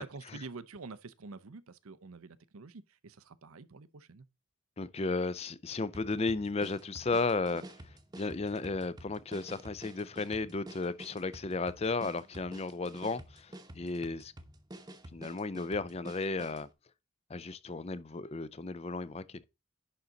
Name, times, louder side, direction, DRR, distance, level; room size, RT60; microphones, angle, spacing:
voice 1, 0.0-4.3, right 4 dB, 80° right, 0.7 m, -47 dB
voice 2, 4.8-14.3 15.1-16.7 17.3-19.4, left 3 dB, 30° left, 0.5 m, -34 dB
sound 1, 5.9-16.7, right 1 dB, 20° right, 0.9 m, -50 dB
11.0 x 4.1 x 3.8 m
head